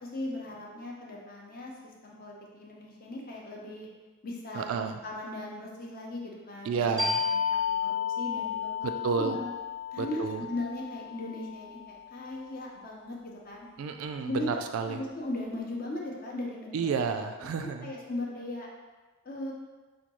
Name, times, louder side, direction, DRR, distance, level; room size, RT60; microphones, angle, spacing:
voice 1, 0.0-3.9 4.2-7.4 7.8-9.5 9.9-13.7 14.3-14.5 14.9-17.0 17.6-18.7 19.2-19.5, left 2 dB, 45° left, -2 dB, 0.6 m, -38 dB
voice 2, 4.5-5.0 6.7-7.2 9.0-9.4 10.0-10.4 13.8-15.0 16.7-17.9, right 5 dB, 75° right, 6 dB, 0.3 m, -31 dB
sound 1, 7.0-12.3, left 7 dB, 15° right, 0.6 m, -33 dB
4.9 x 2.2 x 3.0 m, 1.3 s
head